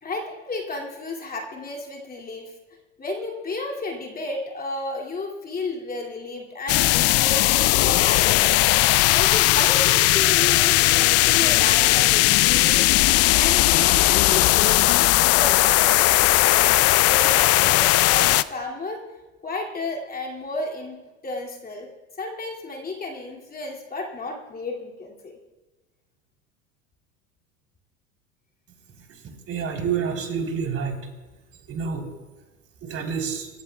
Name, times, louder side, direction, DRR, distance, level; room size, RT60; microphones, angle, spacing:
voice 1, 0.0-2.5 3.0-8.5 9.1-12.9 13.3-19.0 19.4-21.0 21.2-21.9 22.2-25.4, left 2 dB, 25° left, -1 dB, 2.6 m, -32 dB
sound 1, 6.7-18.4, left 17 dB, 40° left, 0.5 m, -18 dB
voice 2, 29.5-31.0 31.7-32.1 32.8-33.5, right 6 dB, 40° right, 2 dB, 3.8 m, -28 dB
26.0 x 14.5 x 2.3 m, 1.2 s
hypercardioid pair, 90°, 38 cm